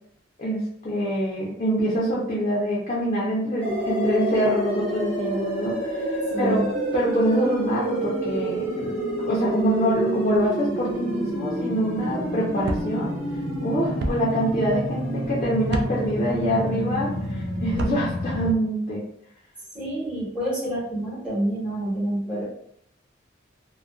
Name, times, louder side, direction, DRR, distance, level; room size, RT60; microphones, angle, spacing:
voice 1, 0.4-6.1 6.4-6.6 6.9-8.9 9.2-13.2 13.6-19.0, right 1 dB, 35° left, -5 dB, 0.5 m, -25 dB
sound 1, 3.6-18.5, equal, 75° right, 1.2 m, -28 dB
voice 2, 6.3-6.7 19.7-22.5, right 1 dB, 5° right, -9 dB, 1.1 m, -27 dB
sound 2, 12.6-12.9 14.0-14.2 15.7-15.9 17.7-18.0, right 2 dB, 55° right, 0.3 m, -27 dB
2.4 x 2.1 x 2.3 m, 0.70 s
head